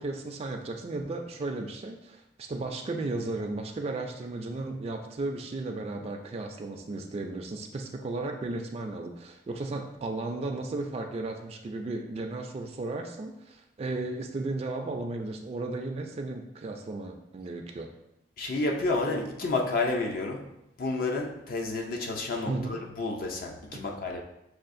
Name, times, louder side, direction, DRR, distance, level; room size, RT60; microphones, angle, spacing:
voice 1, 0.0-17.9 22.5-22.8 23.7-23.8, right 2 dB, 35° right, 0.3 m, -35 dB
voice 2, 18.4-20.5 20.8-24.2, left 2 dB, 55° left, 0.4 m, -30 dB
6.3 x 2.4 x 2.5 m
head